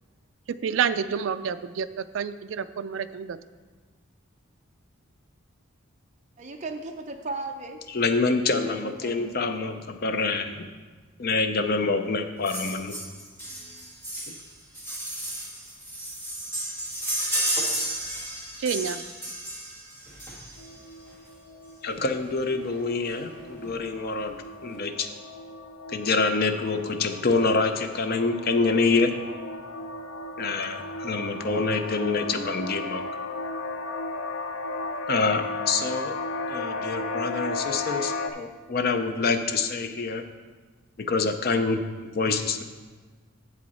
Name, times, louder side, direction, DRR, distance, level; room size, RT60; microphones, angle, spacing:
voice 1, 0.6-3.4 18.6-19.0, right 7 dB, 60° right, 12 dB, 0.3 m, -28 dB
voice 2, 6.4-7.8 8.6-9.3, right 3 dB, 35° right, 3 dB, 0.7 m, -36 dB
voice 3, 7.9-10.7 11.2-13.0 21.8-25.1 25.9-29.1 30.4-33.0 35.1-36.2 36.5-40.2 41.0-42.6, left 3 dB, 45° left, 7 dB, 0.5 m, -26 dB
sound 1, 12.4-20.8 21.9-22.0 22.3-22.4 22.6-22.8 23.1-23.7 24.2-24.3, right 1 dB, 10° left, 1.6 m, -32 dB
sound 2, 20.6-38.3, left 2 dB, 85° left, 0.7 m, -35 dB
7.6 x 7.5 x 4.2 m, 1.4 s
head